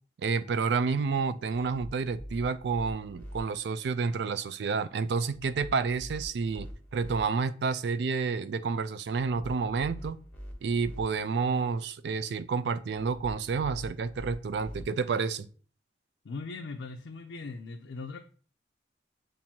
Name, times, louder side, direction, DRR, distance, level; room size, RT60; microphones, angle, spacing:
voice 1, 0.2-10.2 10.6-15.5, right 5 dB, 65° right, 12 dB, 0.3 m, -30 dB
sound 1, 1.5-3.4 5.3-7.2 9.1-11.0 12.9-14.8, equal, 10° left, 0.8 m, -44 dB
voice 2, 16.2-18.2, left 3 dB, 80° left, 3 dB, 0.4 m, -39 dB
7.3 x 2.6 x 2.8 m, 0.41 s
head